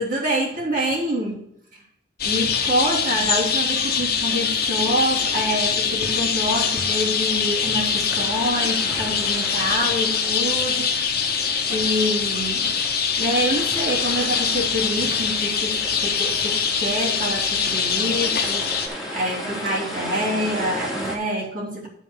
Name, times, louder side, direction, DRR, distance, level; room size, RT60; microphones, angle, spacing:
voice 1, 0.0-1.5 2.2-11.1 11.7-12.7 13.2-21.9, equal, 50° right, -4 dB, 3.2 m, -26 dB
sound 1, 2.2-18.9, left 6 dB, 60° left, 1.2 m, -23 dB
sound 2, 6.5-21.2, equal, 5° right, 2.2 m, -36 dB
10.5 x 4.2 x 6.9 m, 0.75 s
head